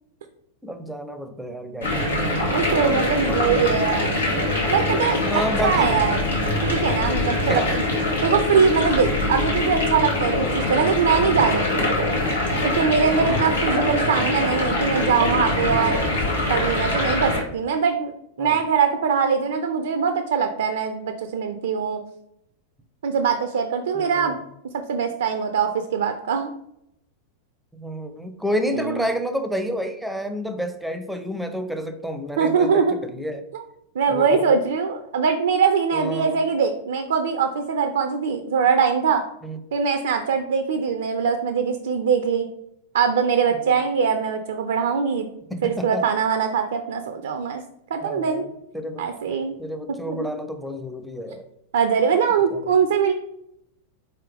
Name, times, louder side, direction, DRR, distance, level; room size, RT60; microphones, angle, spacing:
voice 1, 0.6-2.2 2.8-3.7 5.2-5.9 7.5-7.7 13.2-13.5 18.4-18.6 23.9-24.4 27.7-33.4 34.1-34.6 35.9-36.4 39.4-39.6 43.6-43.8 45.5-46.0 48.0-49.1 49.6-51.5 52.5-52.8, equal, ahead, 7 dB, 0.5 m, -30 dB
sound 1, 1.8-17.4, left 1 dB, 75° left, 1.3 m, -23 dB
voice 2, 2.5-4.3 4.7-6.2 6.6-7.8 8.2-11.9 12.6-16.0 16.5-18.1 18.4-22.0 23.0-24.3 24.9-26.5 28.7-29.1 32.4-32.9 33.5-33.6 34.0-39.2 39.7-42.5 42.9-45.3 45.6-47.6 47.9-48.4 49.0-49.6 49.9-50.3 51.7-53.1, right 6 dB, 60° right, 7 dB, 0.4 m, -22 dB
4.3 x 3.7 x 3.3 m, 0.78 s
figure-of-eight pair, 90°, 0 cm